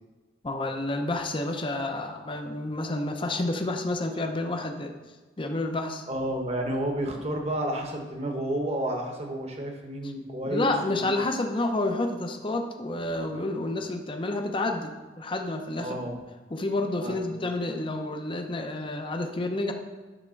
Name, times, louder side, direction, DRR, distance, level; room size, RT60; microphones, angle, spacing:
voice 1, 0.4-4.9 5.4-6.0 10.4-16.0 16.5-19.7, left 2 dB, 30° left, 4 dB, 0.7 m, -29 dB
voice 2, 6.1-11.1 15.8-16.2 17.0-17.3, right 1 dB, 35° right, 2 dB, 1.2 m, -31 dB
10.5 x 3.6 x 6.4 m, 1.3 s
head